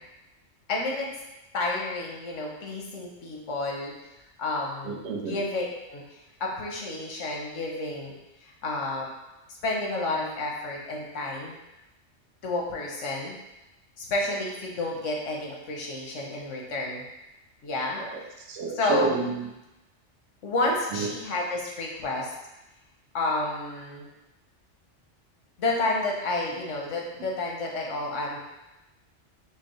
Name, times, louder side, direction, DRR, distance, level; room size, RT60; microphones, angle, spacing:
voice 1, 0.7-1.1 1.5-3.9 4.4-5.0 5.3-6.0 6.4-8.1 8.4-9.1 9.6-11.5 12.4-13.4 14.0-17.0 17.6-18.0 18.8-19.2 20.4-22.3 23.1-24.1 25.6-28.4, left 2 dB, 90° left, -1 dB, 1.1 m, -30 dB
voice 2, 4.8-5.4 18.0-19.5 20.9-21.1, right 5 dB, 80° right, 0 dB, 0.9 m, -30 dB
5.2 x 2.0 x 3.0 m, 0.97 s
omnidirectional pair, 1.2 m